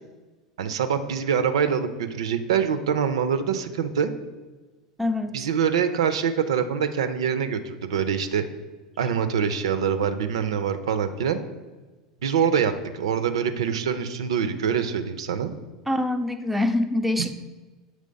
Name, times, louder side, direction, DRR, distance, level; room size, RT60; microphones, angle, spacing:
voice 1, 0.6-4.1 5.3-8.4 9.0-11.4 12.2-15.5, right 7 dB, 65° right, 10 dB, 0.4 m, -24 dB
voice 2, 5.0-5.3 15.9-17.3, left 2 dB, 5° right, 6 dB, 0.4 m, -24 dB
7.5 x 3.2 x 5.1 m, 1.2 s
figure-of-eight pair, 80°, 3 cm